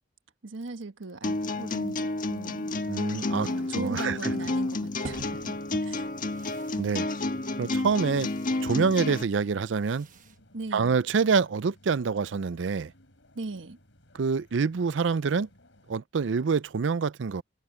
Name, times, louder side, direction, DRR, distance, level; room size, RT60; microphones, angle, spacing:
voice 1, 0.4-2.8 3.4-5.5 5.8-6.0 10.5-10.9 13.3-13.8, right 2 dB, 90° right, 1.2 m, -38 dB
sound 1, 1.2-9.2, left 2 dB, 45° left, 1.4 m, -30 dB
voice 2, 2.9-3.5 3.7-4.3 6.8-7.1 7.6-8.3 8.6-10.1 10.7-12.9 14.1-15.5 15.9-17.4, right 5 dB, 70° right, 0.5 m, -26 dB
sound 2, 4.8-16.0, left 1 dB, 70° left, 7.1 m, -59 dB
sound 3, 5.0-11.3, right 2 dB, 45° right, 1.1 m, -49 dB
head